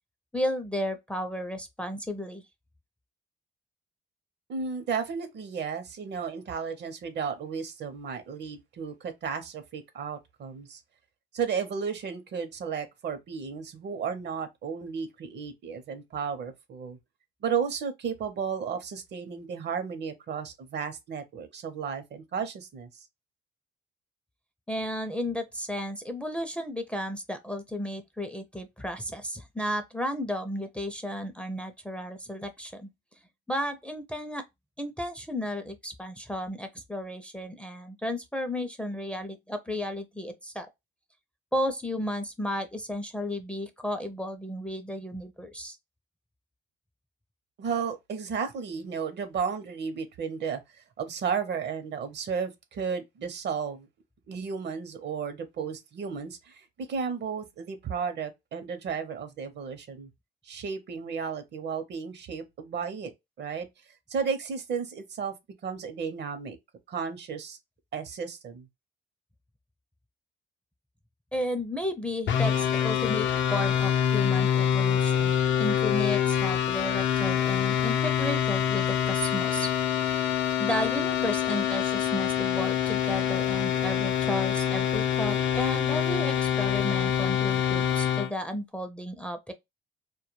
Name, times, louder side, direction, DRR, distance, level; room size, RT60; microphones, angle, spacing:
voice 1, 0.3-2.4 24.7-32.9 33.5-34.4 34.8-40.7 41.5-45.8 71.3-75.3 75.6-79.7 80.6-89.5, equal, 5° left, 0.4 m, -33 dB
voice 2, 4.5-10.8 11.3-17.0 17.4-23.1 47.6-50.6 51.0-53.9 54.3-60.1 60.4-63.1 63.4-63.7 64.1-65.3 65.6-66.6 66.9-67.6 67.9-68.7, right 6 dB, 60° right, 0.7 m, -33 dB
sound 1, 72.3-88.3, left 9 dB, 70° left, 0.5 m, -26 dB
2.2 x 2.2 x 2.9 m
cardioid pair, 90°, 20 cm